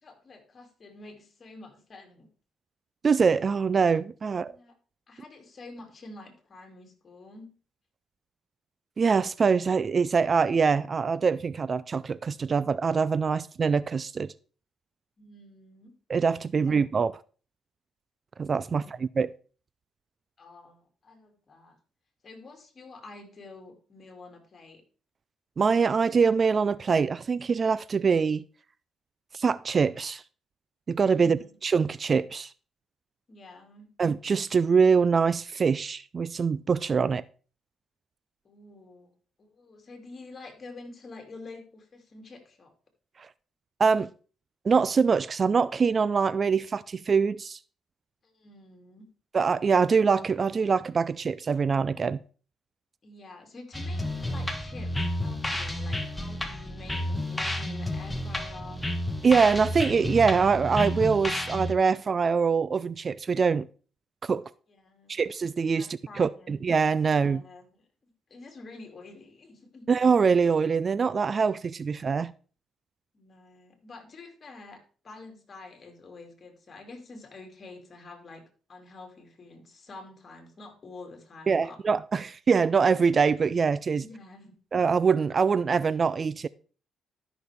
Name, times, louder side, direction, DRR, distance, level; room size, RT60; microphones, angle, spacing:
voice 1, 0.0-2.3 4.2-4.7 5.1-7.5 15.2-15.9 16.5-16.8 18.7-19.0 20.4-21.8 22.2-24.8 31.2-31.5 33.3-33.9 38.4-39.1 39.4-42.7 48.2-49.1 53.0-58.8 64.7-65.2 65.7-66.5 67.1-67.7 68.0-69.9 73.1-78.4 78.7-81.8 84.0-84.5, left 3 dB, 40° left, 2.5 m, -48 dB
voice 2, 3.0-4.5 9.0-14.3 16.1-17.2 18.4-19.3 25.6-28.4 29.3-30.2 30.9-32.5 34.0-37.2 43.8-44.1 44.7-47.6 49.3-52.2 59.2-63.7 64.2-64.5 65.1-67.4 69.9-72.3 81.5-84.0 84.7-86.5, right 5 dB, 40° right, 0.3 m, -24 dB
sound 1, 53.7-61.7, left 1 dB, 10° left, 1.2 m, -31 dB
13.0 x 6.1 x 3.4 m
cardioid pair, 90°, 0 cm